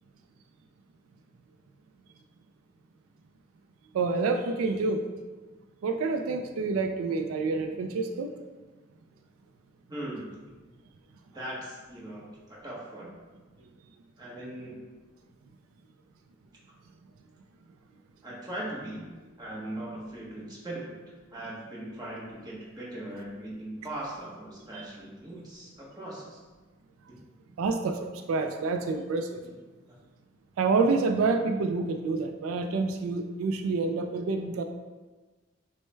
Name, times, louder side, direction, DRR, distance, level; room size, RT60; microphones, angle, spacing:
voice 1, 3.9-5.1 5.8-8.4 24.7-24.8 25.3-25.4 27.6-29.4 30.6-34.6, right 4 dB, 85° right, 6 dB, 0.3 m, -28 dB
voice 2, 9.9-10.3 11.3-13.1 14.2-14.8 18.2-19.1 19.4-20.9 21.3-26.4 29.8-29.9, right 1 dB, 20° right, -5 dB, 0.9 m, -39 dB
6.2 x 2.1 x 3.3 m, 1.3 s
head